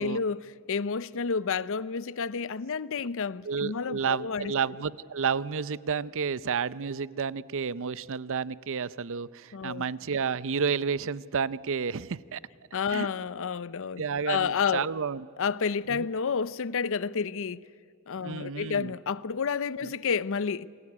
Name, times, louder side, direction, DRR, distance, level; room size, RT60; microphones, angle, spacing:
voice 1, 0.0-4.5 9.5-9.8 12.7-14.9 15.4-17.6 18.1-20.7, left 5 dB, 60° left, 0.6 m, -30 dB
voice 2, 3.4-12.4 12.9-13.1 14.0-15.3 15.9-16.1 18.2-18.9 19.8-19.9, right 6 dB, 60° right, 0.6 m, -31 dB
28.0 x 21.0 x 9.7 m
head